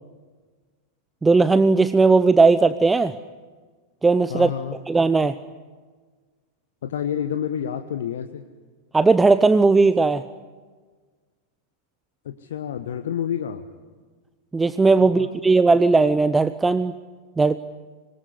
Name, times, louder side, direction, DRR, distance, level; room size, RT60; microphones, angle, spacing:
voice 1, 1.2-3.1 4.0-4.5 4.9-5.4 8.9-10.3 14.5-16.9 17.4-17.6, right 3 dB, 10° right, 14 dB, 0.7 m, -17 dB
voice 2, 4.3-4.8 6.8-8.4 12.2-13.6 15.0-15.3, left 9 dB, 60° left, 8 dB, 1.2 m, -29 dB
26.0 x 22.0 x 9.8 m, 1.4 s
figure-of-eight pair, 90°, 0 cm